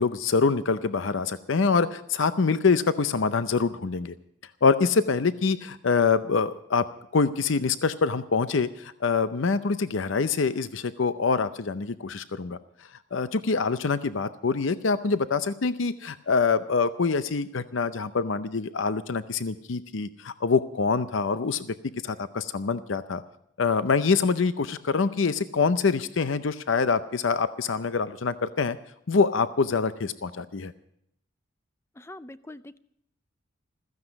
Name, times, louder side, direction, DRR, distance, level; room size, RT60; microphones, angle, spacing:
voice 1, 0.0-4.1 4.6-6.9 7.1-12.6 13.1-21.7 22.0-23.2 23.6-28.8 29.1-30.7, left 4 dB, 70° left, 13 dB, 0.6 m, -25 dB
voice 2, 32.0-32.8, left 1 dB, 15° left, 15 dB, 0.5 m, -43 dB
16.0 x 14.5 x 5.2 m, 0.73 s
head